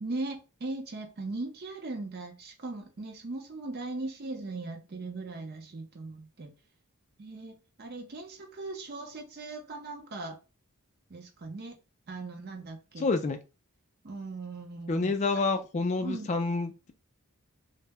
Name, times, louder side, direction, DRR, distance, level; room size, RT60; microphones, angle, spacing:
voice 1, 0.0-6.5 7.2-7.5 7.8-10.4 11.1-11.8 12.1-13.1 14.0-15.4 16.0-16.3, right 2 dB, 45° right, 0.6 m, -39 dB
voice 2, 13.0-13.4 14.9-16.9, left 3 dB, 30° left, 0.3 m, -28 dB
2.1 x 2.0 x 3.4 m
head